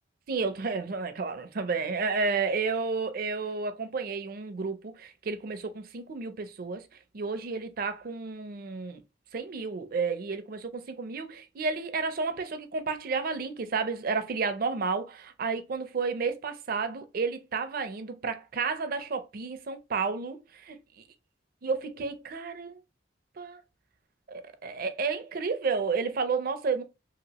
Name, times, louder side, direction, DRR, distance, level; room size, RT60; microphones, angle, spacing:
voice 1, 0.3-6.8 7.1-9.0 9.3-20.8 21.6-22.8 23.4-23.6 24.3-26.8, right 4 dB, 55° right, 0.5 m, -31 dB
2.9 x 2.7 x 2.8 m
head